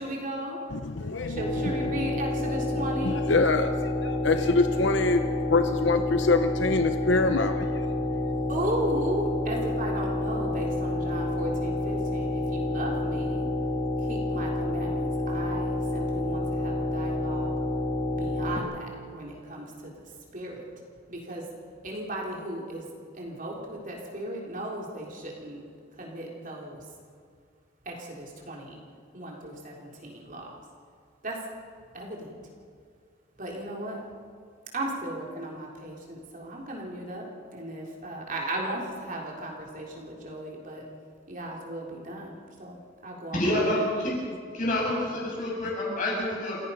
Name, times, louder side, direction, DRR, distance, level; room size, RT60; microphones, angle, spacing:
voice 1, 0.0-0.6 1.3-3.2 8.5-13.5 14.0-17.5 18.1-19.9 20.3-20.6 21.1-21.4 21.8-22.9 23.1-25.7 26.0-26.8 27.9-28.8 29.1-30.6 31.2-31.4 31.9-32.3 33.4-34.0 34.7-37.3 37.5-40.9 41.3-42.8 43.0-43.7, right 1 dB, 40° right, -2 dB, 3.7 m, -35 dB
voice 2, 0.7-1.4 3.0-5.2 5.5-7.9, left 3 dB, 65° left, 8 dB, 0.8 m, -25 dB
sound 1, 1.4-18.6, left 1 dB, 25° left, 2.5 m, -29 dB
voice 3, 43.3-44.1 44.5-46.6, left 1 dB, 40° left, -4 dB, 7.9 m, -27 dB
29.0 x 16.5 x 5.7 m, 2.1 s
head